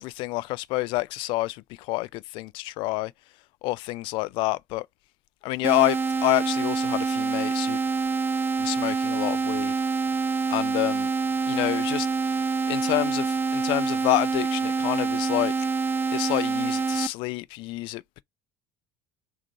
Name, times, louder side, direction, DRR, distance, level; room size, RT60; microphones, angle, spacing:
voice 1, 0.0-3.1 3.6-4.9 5.4-7.8 8.6-9.7 10.5-11.1 11.5-15.7 16.1-18.2, left 20 dB, 55° left, 0.3 m, -28 dB
sound 1, 5.6-17.1, right 4 dB, 20° right, 0.4 m, -26 dB
3.6 x 2.6 x 4.3 m
hypercardioid pair, 65°, 10 cm